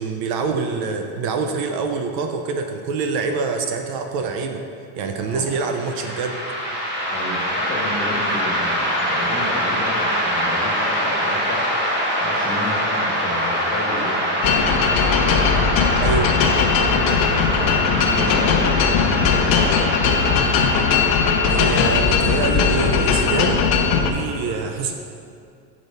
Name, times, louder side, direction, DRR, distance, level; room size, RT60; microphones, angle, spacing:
voice 1, 0.0-4.6 5.0-6.4 16.0-16.3 21.5-23.7 23.9-24.9, right 4 dB, 60° right, 5 dB, 0.7 m, -25 dB
voice 2, 5.2-5.5 7.1-14.3 15.0-15.8 16.9-19.9, left 1 dB, 20° left, -4 dB, 1.7 m, -32 dB
sound 1, 5.5-21.9, equal, 25° right, 1.4 m, -24 dB
sound 2, 14.4-24.1, left 6 dB, 50° left, 0.8 m, -19 dB
6.3 x 5.2 x 5.4 m, 2.5 s
cardioid pair, 135°, 43 cm